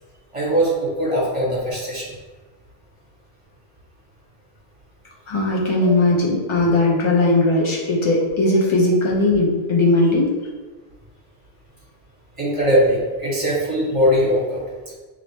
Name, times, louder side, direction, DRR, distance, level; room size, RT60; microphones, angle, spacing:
voice 1, 0.3-2.1 5.8-5.9 12.4-14.6, equal, 30° right, -6 dB, 1.4 m, -20 dB
voice 2, 5.3-10.3, left 2 dB, 30° left, -3 dB, 0.7 m, -18 dB
4.9 x 2.8 x 2.9 m, 1.4 s
omnidirectional pair, 1.1 m